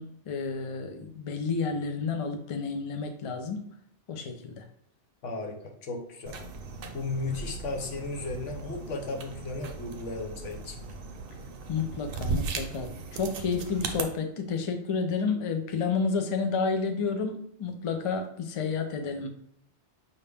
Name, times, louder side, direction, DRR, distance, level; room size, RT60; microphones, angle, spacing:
voice 1, 0.0-3.7 4.1-4.6 11.7-19.3, left 5 dB, 45° left, 5 dB, 0.4 m, -30 dB
voice 2, 5.2-6.4 6.9-10.8, left 3 dB, 90° left, 2 dB, 1.2 m, -35 dB
sound 1, 6.3-14.0, right 4 dB, 60° right, 0.7 m, -37 dB
5.5 x 2.5 x 3.4 m, 0.72 s
omnidirectional pair, 1.2 m